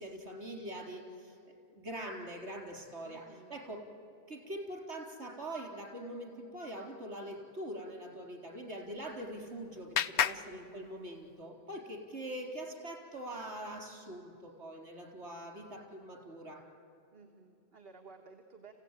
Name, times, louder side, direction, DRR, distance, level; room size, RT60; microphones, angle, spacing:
voice 1, 0.0-1.4 1.7-3.2 3.5-3.8 4.3-16.6, right 1 dB, 85° right, 0 dB, 4.3 m, -43 dB
voice 2, 3.0-3.6 10.4-11.1 17.1-18.7, right 4 dB, 60° right, 3 dB, 1.6 m, -56 dB
Clapping, 8.8-11.5, left 8 dB, 80° left, 1.0 m, -36 dB
29.0 x 16.0 x 9.1 m, 2.7 s
omnidirectional pair, 1.1 m